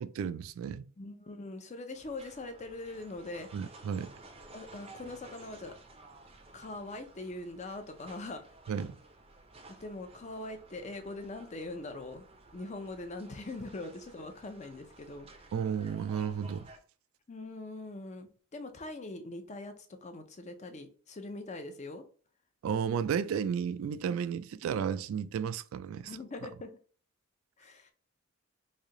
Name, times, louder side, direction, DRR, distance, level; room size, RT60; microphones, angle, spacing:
voice 1, 0.0-0.9 3.5-4.1 8.7-9.0 15.5-16.7 22.6-26.1, right 7 dB, 85° right, 0.3 m, -33 dB
voice 2, 1.0-3.5 4.5-5.8 6.5-8.4 9.7-12.3 12.5-15.5 17.3-22.0 26.1-26.7 27.6-27.9, left 2 dB, 35° left, 0.5 m, -42 dB
sound 1, 2.0-16.8, right 2 dB, 30° right, 0.5 m, -54 dB
3.2 x 2.7 x 3.7 m
head